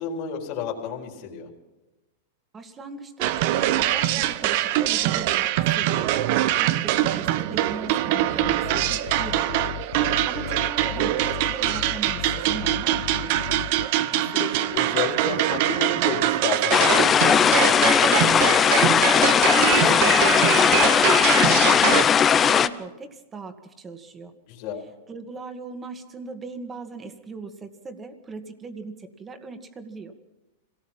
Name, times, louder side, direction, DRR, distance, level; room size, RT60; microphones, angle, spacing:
voice 1, 0.0-1.5 6.4-6.8 14.0-17.8 24.5-24.9, left 6 dB, 40° left, -2 dB, 4.1 m, -32 dB
voice 2, 2.5-6.2 6.5-9.6 10.0-13.4 18.6-24.3 25.1-30.1, right 4 dB, 15° right, 7 dB, 2.0 m, -38 dB
sound 1, 3.2-22.0, right 14 dB, 50° right, 0.9 m, -24 dB
sound 2, 8.4-13.9, left 13 dB, 70° left, 0.7 m, -36 dB
sound 3, 16.7-22.7, left 7 dB, 20° left, 0.7 m, -18 dB
26.0 x 18.5 x 5.7 m, 1.0 s
supercardioid pair, 150°, 0 cm